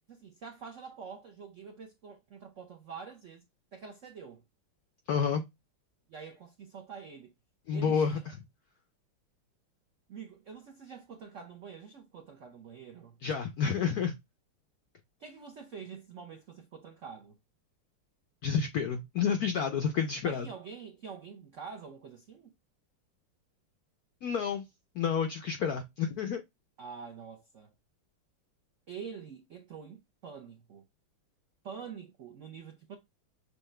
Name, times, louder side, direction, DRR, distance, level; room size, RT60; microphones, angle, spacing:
voice 1, 0.1-3.4 3.7-4.4 6.1-7.3 7.7-8.2 10.1-13.2 15.2-17.4 20.2-22.5 26.8-27.7 28.9-30.8 31.6-32.9, right 6 dB, 85° right, 0.6 m, -46 dB
voice 2, 5.1-5.4 7.7-8.4 13.2-14.1 18.4-20.5 24.2-24.7 24.9-26.4, left 6 dB, 85° left, 0.8 m, -29 dB
6.6 x 2.3 x 3.1 m
omnidirectional pair, 2.3 m